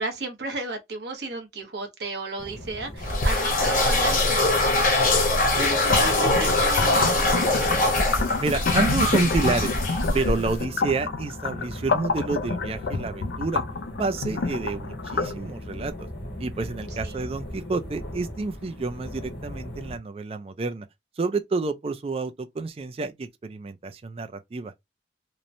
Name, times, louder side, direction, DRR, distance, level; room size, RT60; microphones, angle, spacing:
voice 1, 0.0-7.8 17.0-17.2, right 2 dB, 65° right, 0.9 m, -34 dB
sound 1, 2.4-20.0, equal, 85° left, 1.1 m, -39 dB
sound 2, 3.0-10.6, left 2 dB, 45° left, 0.8 m, -22 dB
sound 3, 5.8-15.3, left 4 dB, 65° left, 0.4 m, -29 dB
voice 2, 8.4-9.7 10.1-13.6 14.0-16.1 16.4-20.9 21.2-24.7, right 3 dB, 30° right, 0.3 m, -29 dB
3.0 x 2.1 x 2.5 m
head